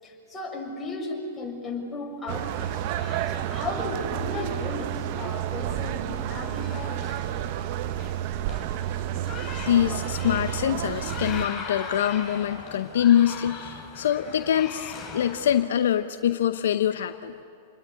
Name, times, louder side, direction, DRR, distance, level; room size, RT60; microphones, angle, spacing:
voice 1, 0.0-2.7 3.3-7.0 9.2-9.3, left 3 dB, 10° left, -2 dB, 6.5 m, -35 dB
sound 1, 2.3-11.5, right 12 dB, 50° right, 0.9 m, -30 dB
sound 2, 2.6-15.6, left 5 dB, 35° left, 7.4 m, -41 dB
voice 2, 9.6-17.3, left 10 dB, 70° left, 10 dB, 0.8 m, -24 dB
28.0 x 21.0 x 9.8 m, 2.5 s
hypercardioid pair, 105°, 0 cm